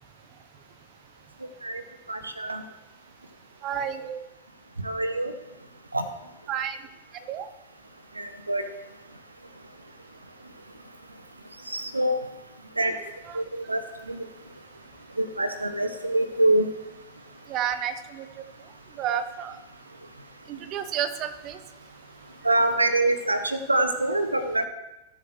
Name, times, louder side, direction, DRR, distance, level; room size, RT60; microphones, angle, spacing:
voice 1, 2.1-2.6 4.8-5.3 5.9-6.0 8.2-8.7 11.7-12.2 12.8-13.0 13.3-14.3 15.2-16.7 22.4-24.7, right 1 dB, 80° right, 10 dB, 0.8 m, -25 dB
voice 2, 3.6-4.2 6.5-6.8 7.3-7.5 13.3-13.4 17.5-18.2 19.0-19.6 20.5-21.6, right 9 dB, 35° right, 12 dB, 0.9 m, -30 dB
17.5 x 7.6 x 3.2 m, 0.97 s
figure-of-eight pair, 90°, 0 cm